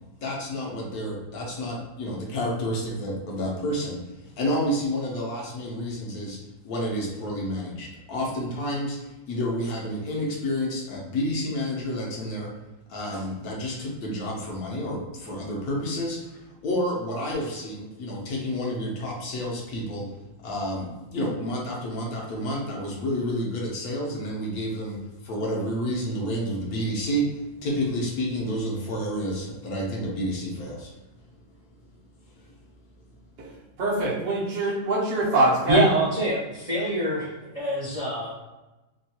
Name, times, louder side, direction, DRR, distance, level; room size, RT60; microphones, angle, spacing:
voice 1, 0.2-6.4 6.6-12.6 12.9-20.2 20.4-30.9 32.4-32.5, equal, 75° left, -3 dB, 1.2 m, -30 dB
voice 2, 33.4-35.8, right 2 dB, 60° right, -6 dB, 1.2 m, -24 dB
voice 3, 35.7-37.3 37.5-38.5, right 1 dB, 45° right, -8 dB, 0.5 m, -25 dB
3.4 x 2.3 x 2.7 m, 1.0 s
omnidirectional pair, 1.6 m